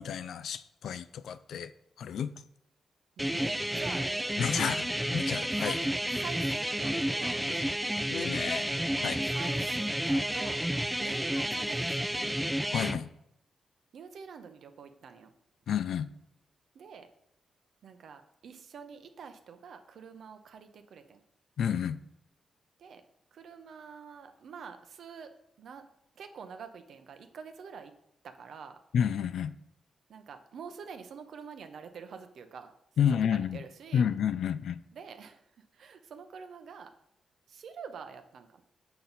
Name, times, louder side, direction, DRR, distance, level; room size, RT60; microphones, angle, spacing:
voice 1, 0.0-1.7 2.0-2.3 4.4-4.9 5.1-5.8 8.1-8.7 9.0-9.2 12.7-13.1 15.7-16.1 21.6-22.0 28.9-29.5 33.0-33.6 33.9-34.8, left 8 dB, 75° left, 14 dB, 0.3 m, -30 dB
sound 1, 3.2-13.0, right 1 dB, 5° right, 0.4 m, -31 dB
voice 2, 3.2-4.8 5.6-7.7 9.3-10.6 11.0-12.4 13.9-15.3 16.7-17.1 17.8-21.2 22.8-23.0 23.3-25.3 25.6-25.8 26.2-27.9 28.2-28.8 30.1-32.7 33.0-33.1 33.3-34.1 34.9-35.4 35.7-36.9 37.5-38.6, right 6 dB, 70° right, 8 dB, 0.7 m, -46 dB
7.0 x 5.8 x 4.0 m, 0.77 s
supercardioid pair, 55°, 0 cm